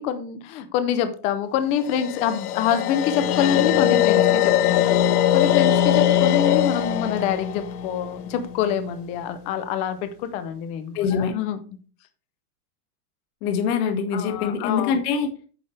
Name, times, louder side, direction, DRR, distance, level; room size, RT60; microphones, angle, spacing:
voice 1, 0.0-5.0 5.3-11.6 14.1-15.0, left 8 dB, 15° left, 10 dB, 0.4 m, -26 dB
sound 1, 1.8-8.9, left 11 dB, 70° left, 1.2 m, -21 dB
voice 2, 10.9-11.3 13.4-15.3, left 6 dB, 45° left, 5 dB, 1.9 m, -24 dB
8.8 x 7.2 x 3.3 m, 0.39 s
supercardioid pair, 155°, 47 cm